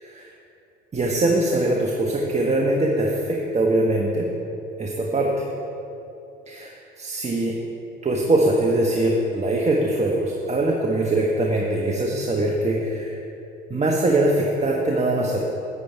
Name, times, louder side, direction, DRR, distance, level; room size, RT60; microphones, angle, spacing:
voice 1, 0.9-4.3 4.8-5.3 6.5-7.6 8.0-13.2 13.7-15.4, right 1 dB, 25° right, -1 dB, 1.1 m, -22 dB
9.1 x 8.4 x 4.6 m, 2.8 s
hypercardioid pair, 65°, 29 cm